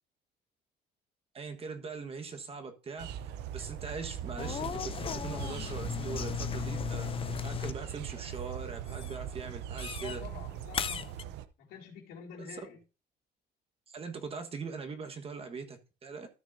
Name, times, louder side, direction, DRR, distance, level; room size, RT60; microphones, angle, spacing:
voice 1, 1.3-3.1 3.5-4.8 5.1-7.1 7.4-10.2 12.4-12.5 13.9-16.3, right 4 dB, 35° right, 1.4 m, -41 dB
sound 1, 3.0-11.5, right 10 dB, 85° right, 0.7 m, -41 dB
sound 2, 4.4-7.9 8.1-8.6 8.9-9.2 9.8-10.2 10.7-11.2, left 8 dB, 35° left, 0.5 m, -36 dB
voice 2, 10.0-11.3 11.6-12.8, left 7 dB, 80° left, 2.6 m, -47 dB
13.0 x 6.2 x 2.7 m
cardioid pair, 110°, 17 cm